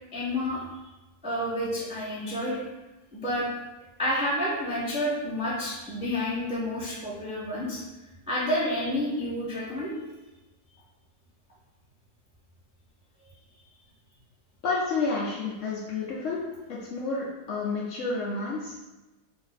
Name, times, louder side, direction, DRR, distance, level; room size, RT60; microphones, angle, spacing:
voice 1, 0.1-0.6 1.2-2.6 3.1-3.5 4.0-7.8 8.3-10.1, left 1 dB, 10° right, -8 dB, 0.3 m, -29 dB
voice 2, 14.6-16.4 16.7-18.7, left 3 dB, 70° left, -4 dB, 0.7 m, -30 dB
2.6 x 2.5 x 3.9 m, 1.1 s
omnidirectional pair, 1.7 m